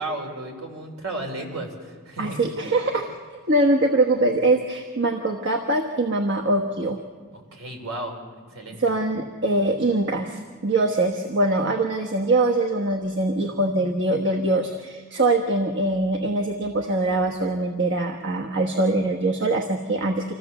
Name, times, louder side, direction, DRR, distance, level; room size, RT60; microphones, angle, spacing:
voice 1, 0.0-2.6 7.5-8.2 8.5-8.8, right 2 dB, 75° right, 2 dB, 3.9 m, -33 dB
voice 2, 2.2-3.1 3.5-7.0 8.7-20.3, right 2 dB, 55° right, 2 dB, 1.3 m, -23 dB
26.0 x 15.5 x 7.1 m, 1.6 s
head